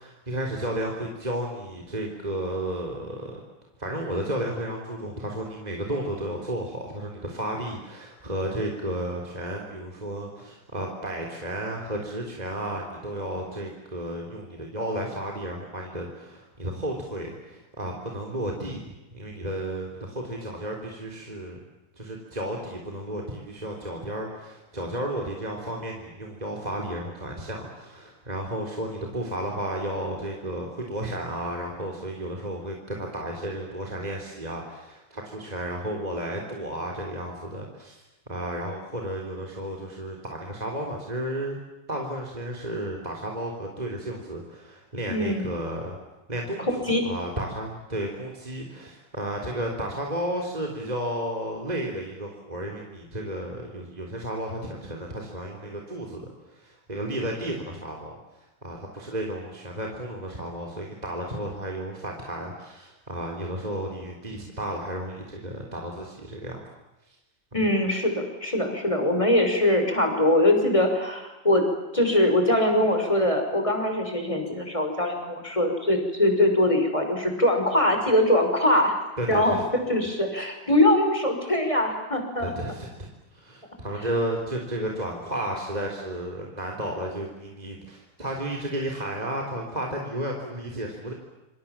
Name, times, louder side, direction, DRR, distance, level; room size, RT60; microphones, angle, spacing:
voice 1, 0.0-3.4 3.8-18.8 19.1-21.6 22.0-38.0 38.3-41.6 41.9-46.0 46.3-56.2 56.5-58.2 58.6-66.6 79.2-79.6 82.4-91.1, right 1 dB, 20° right, 1 dB, 4.0 m, -33 dB
voice 2, 45.1-45.5 46.6-47.1 67.5-71.7 71.9-79.0 79.3-79.6 79.9-82.5, left 1 dB, 15° left, 4 dB, 5.9 m, -22 dB
27.5 x 27.0 x 7.5 m, 1.1 s
omnidirectional pair, 2.0 m